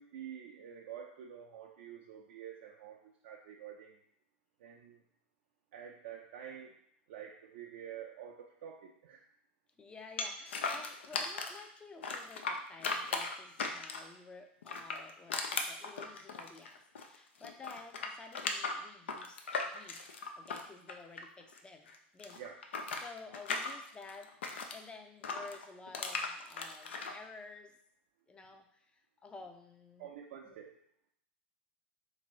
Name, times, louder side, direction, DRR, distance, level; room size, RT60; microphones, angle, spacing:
voice 1, 0.0-4.0 4.6-5.0 5.7-6.8 7.1-9.2 22.4-22.6 30.0-30.8, right 9 dB, 65° right, 1 dB, 0.4 m, -48 dB
voice 2, 9.8-19.4 19.7-20.0 20.4-22.4 23.0-24.3 24.7-27.8 28.3-30.1 30.4-30.6, left 4 dB, 15° left, 4 dB, 0.5 m, -52 dB
sound 1, 10.2-11.6 12.0-14.2 14.6-17.2 17.4-21.6 21.9-24.8 25.2-27.1, left 4 dB, 85° left, 0.4 m, -37 dB
3.5 x 2.6 x 3.0 m, 0.69 s
hypercardioid pair, 100°, 6 cm